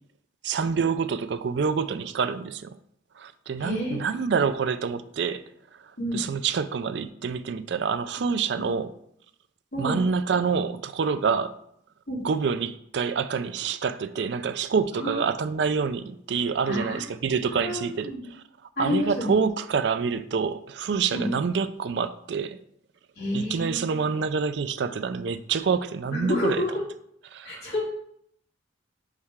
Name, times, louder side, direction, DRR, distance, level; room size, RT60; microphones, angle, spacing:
voice 1, 0.4-2.8 3.2-8.9 9.8-11.6 12.2-18.4 18.8-22.6 23.3-26.6 27.3-27.7, right 5 dB, 65° right, 0.4 m, -27 dB
voice 2, 3.6-4.0 6.0-6.2 8.6-8.7 9.7-10.0 12.1-12.2 15.0-15.2 16.7-17.1 17.5-18.2 18.8-19.4 21.1-21.3 23.2-24.0 26.1-26.7 27.4-27.8, left 1 dB, 55° left, 2.6 m, -29 dB
5.5 x 4.8 x 3.6 m
head